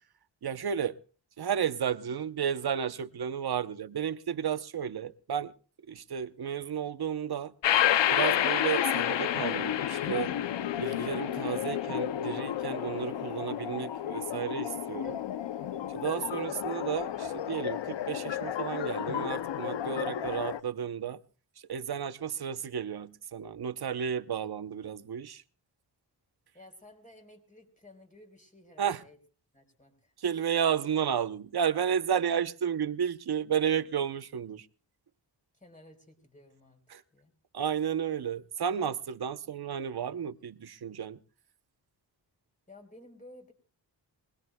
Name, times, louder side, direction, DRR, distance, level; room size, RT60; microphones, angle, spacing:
voice 1, 0.4-1.0 1.4-5.5 5.9-7.5 8.1-10.3 10.8-15.2 15.9-21.2 21.7-25.4 28.8-29.0 30.2-34.7 36.9-37.0 37.5-41.2, right 8 dB, 60° right, 0.8 m, -32 dB
sound 1, 7.6-20.6, left 11 dB, 80° left, 0.6 m, -31 dB
voice 2, 26.5-29.2 29.5-30.1 35.5-36.8 37.1-37.3 42.7-43.5, left 1 dB, 20° left, 4.0 m, -54 dB
24.0 x 19.5 x 2.2 m
cardioid pair, 60°, 43 cm